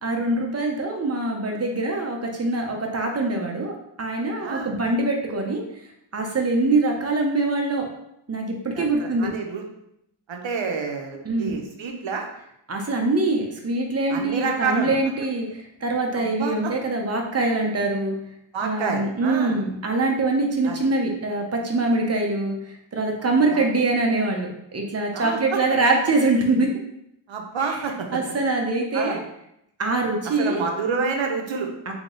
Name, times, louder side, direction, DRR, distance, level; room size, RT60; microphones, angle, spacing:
voice 1, 0.0-5.6 6.1-7.8 8.3-9.3 11.2-11.6 12.7-15.5 15.8-18.1 18.6-22.5 22.9-26.7 27.6-27.7 28.1-29.2 29.8-30.7 31.9-32.0, right 2 dB, 30° right, 1 dB, 0.8 m, -23 dB
voice 2, 4.4-4.7 8.7-9.6 10.3-12.3 14.1-15.0 16.1-16.7 18.5-19.6 20.7-20.8 23.2-23.6 25.1-25.6 27.3-28.2 28.9-29.2 30.4-31.7, right 5 dB, 70° right, 3 dB, 0.8 m, -28 dB
3.5 x 2.9 x 3.9 m, 0.78 s
wide cardioid pair, 80°, 49 cm